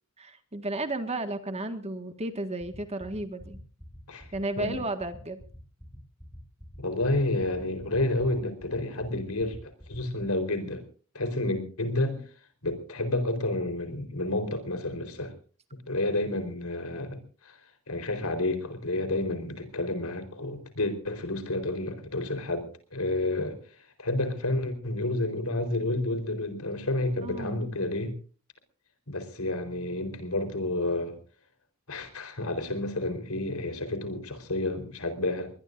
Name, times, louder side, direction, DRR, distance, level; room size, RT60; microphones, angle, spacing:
voice 1, 0.2-3.6 4.3-5.4 27.2-27.6, right 2 dB, 30° right, 7 dB, 1.7 m, -33 dB
sound 1, 2.6-10.2, equal, 5° left, 6.6 m, -46 dB
voice 2, 6.8-10.8 11.1-12.2 12.6-15.3 15.9-17.6 17.9-23.6 24.0-28.1 29.1-31.2 31.9-35.5, left 2 dB, 80° left, 8 dB, 4.2 m, -30 dB
22.0 x 21.0 x 2.6 m, 0.40 s
head